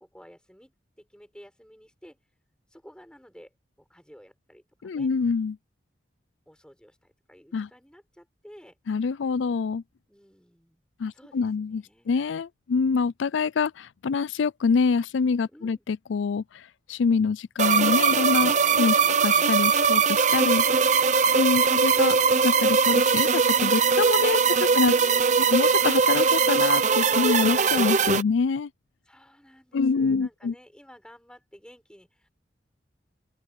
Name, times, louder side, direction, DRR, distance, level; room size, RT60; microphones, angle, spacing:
voice 1, 0.0-2.2 2.7-5.1 6.4-8.8 10.1-10.8 11.1-12.1 15.5-15.8 21.2-21.5 25.0-25.3 29.0-32.3, equal, 5° left, 7.0 m, -52 dB
voice 2, 4.8-5.6 7.5-7.7 8.9-9.8 11.0-16.6 16.9-20.6 21.3-22.2 22.4-24.9 25.5-28.7 29.7-30.5, left 5 dB, 90° left, 0.4 m, -26 dB
sound 1, 17.6-28.2, right 5 dB, 40° right, 0.8 m, -21 dB
open air
head